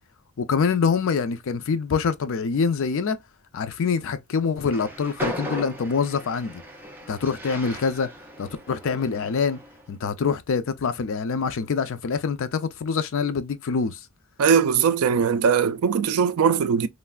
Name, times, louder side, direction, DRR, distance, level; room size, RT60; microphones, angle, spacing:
voice 1, 0.4-3.2 3.5-6.6 7.1-8.1 8.4-9.6 9.9-14.0, left 5 dB, 60° left, 0.4 m, -25 dB
Train, 4.6-9.8, equal, 10° right, 0.7 m, -37 dB
voice 2, 14.4-16.9, right 6 dB, 70° right, 0.4 m, -20 dB
3.2 x 2.4 x 2.2 m
head